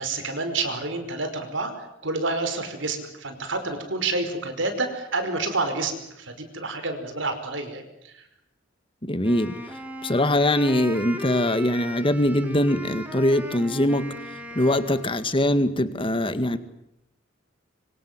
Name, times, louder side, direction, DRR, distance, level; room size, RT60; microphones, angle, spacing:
voice 1, 0.0-8.2, right 3 dB, 70° right, 7 dB, 5.3 m, -29 dB
voice 2, 9.0-9.5 10.0-14.1 14.5-16.6, left 1 dB, 30° left, 11 dB, 1.9 m, -22 dB
Wind instrument woodwind instrument, 9.2-15.4, equal, 10° right, 3.5 m, -38 dB
26.0 x 26.0 x 7.5 m, 0.81 s
head